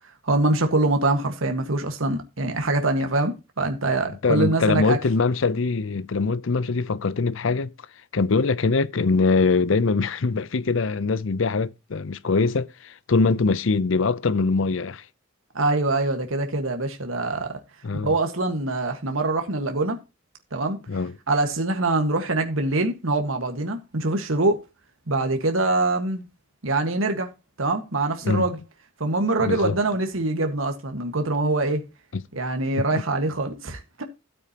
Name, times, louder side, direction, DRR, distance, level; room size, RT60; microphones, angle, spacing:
voice 1, 0.2-5.0 15.5-17.6 18.0-20.0 20.5-20.8 21.3-24.6 25.1-26.2 26.6-27.3 27.6-28.6 29.0-31.8 32.3-34.0, right 2 dB, 80° right, 1.6 m, -24 dB
voice 2, 4.2-7.7 8.1-15.0 17.8-18.1 20.9-21.1 28.2-28.5 29.5-29.8 32.1-32.2 32.8-32.9, left 4 dB, 70° left, 0.6 m, -23 dB
13.0 x 8.6 x 2.9 m
head